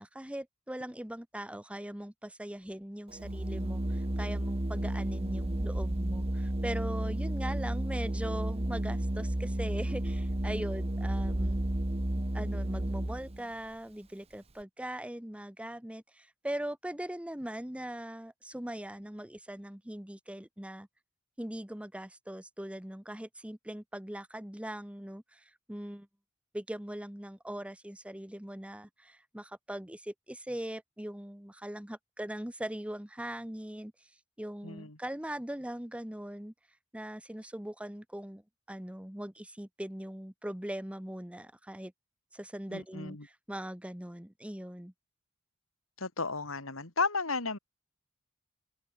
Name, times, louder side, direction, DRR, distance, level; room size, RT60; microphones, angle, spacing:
voice 1, 0.0-11.6 12.3-20.9 21.4-26.1 26.5-33.9 34.4-36.5 36.9-38.4 38.7-41.9 42.3-44.9, right 1 dB, 5° right, 1.1 m, -40 dB
Organ, 3.1-13.4, right 1 dB, 30° right, 1.1 m, -32 dB
voice 2, 34.6-35.0 42.7-43.3 46.0-47.6, left 4 dB, 80° left, 3.5 m, -33 dB
head